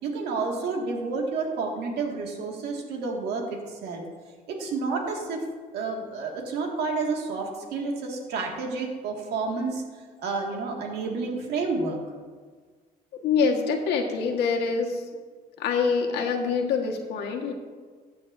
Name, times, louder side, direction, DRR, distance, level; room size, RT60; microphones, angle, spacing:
voice 1, 0.0-4.0 4.5-5.4 5.7-9.8 10.2-12.0, right 4 dB, 75° right, 0 dB, 2.0 m, -30 dB
voice 2, 13.2-15.0 15.6-17.5, left 5 dB, 80° left, 1 dB, 1.5 m, -25 dB
14.5 x 8.8 x 2.6 m, 1.5 s
cardioid pair, 110°, 17 cm